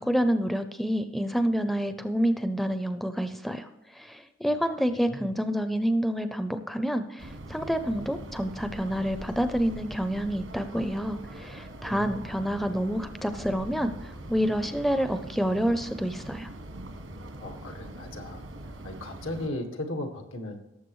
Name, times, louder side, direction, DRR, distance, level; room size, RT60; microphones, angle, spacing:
voice 1, 0.0-3.7 4.0-13.9 14.3-16.5, equal, ahead, 9 dB, 0.5 m, -28 dB
voice 2, 4.9-5.3 11.9-12.2 17.4-18.4 18.8-20.6, left 1 dB, 90° left, 4 dB, 1.8 m, -36 dB
sound 1, 7.2-19.5, right 1 dB, 85° right, 1.6 m, -42 dB
18.0 x 7.3 x 3.1 m, 0.97 s
head